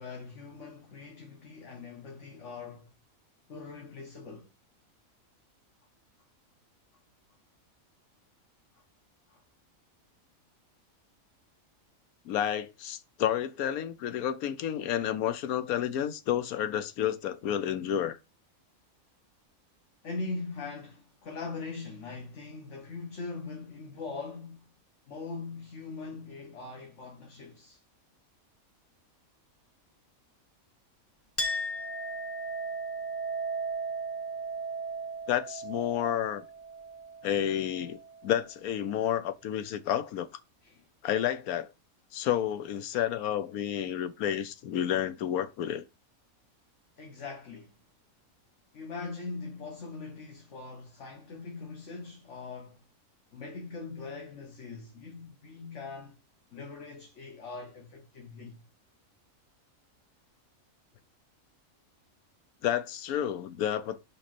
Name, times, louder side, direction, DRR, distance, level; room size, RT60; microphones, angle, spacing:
voice 1, 0.0-2.9 3.5-4.5 9.3-9.4 20.0-24.7 25.1-27.8 40.6-40.9 47.0-47.8 48.7-52.8 53.3-56.2 56.5-58.6, left 4 dB, 55° left, 1.5 m, -41 dB
voice 2, 12.3-18.2 35.3-36.4 37.2-40.3 41.0-41.7 42.1-45.8 62.6-64.0, left 10 dB, 85° left, 1.2 m, -30 dB
Chink clink, 31.4-38.4, right 2 dB, 15° left, 0.7 m, -36 dB
5.5 x 5.3 x 4.3 m
omnidirectional pair, 1.5 m